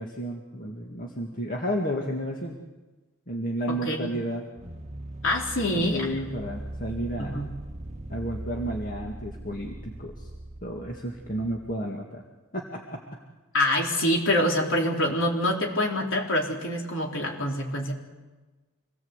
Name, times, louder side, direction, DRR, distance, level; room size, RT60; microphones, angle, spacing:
voice 1, 0.0-2.6 3.3-4.5 5.9-7.4 8.1-10.3 10.6-12.2 12.5-13.0, equal, 40° left, 0 dB, 2.1 m, -32 dB
voice 2, 3.7-4.1 5.2-6.1 7.2-7.5 13.5-17.9, left 1 dB, 60° left, 0 dB, 4.1 m, -26 dB
sound 1, 4.6-11.8, right 1 dB, 30° right, 1.2 m, -40 dB
26.0 x 18.0 x 8.2 m, 1.2 s
head